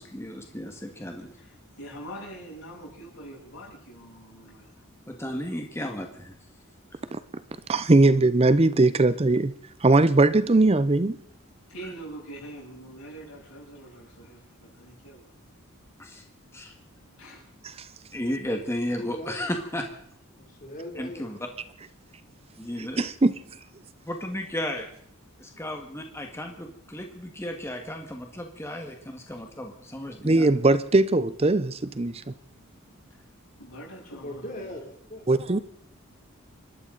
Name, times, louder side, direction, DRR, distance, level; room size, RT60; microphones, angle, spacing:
voice 1, 0.0-1.3 5.1-6.3 16.0-16.2 16.5-16.7 18.1-19.9 21.0-21.4 22.6-23.1 24.1-24.9 25.4-30.5, left 1 dB, 10° left, 3 dB, 1.7 m, -34 dB
voice 2, 1.4-4.8 8.0-8.1 11.7-15.2 17.2-17.4 33.6-34.8, right 1 dB, 85° left, -3 dB, 7.9 m, -44 dB
voice 3, 7.7-9.5 9.8-11.2 17.8-17.9 23.0-23.3 30.2-32.3 35.3-35.6, right 2 dB, 30° right, 14 dB, 0.6 m, -20 dB
voice 4, 18.9-19.5 20.3-21.3 22.2-22.3 34.0-35.2, left 1 dB, 40° left, 1 dB, 3.1 m, -39 dB
28.0 x 12.5 x 4.0 m, 0.63 s
head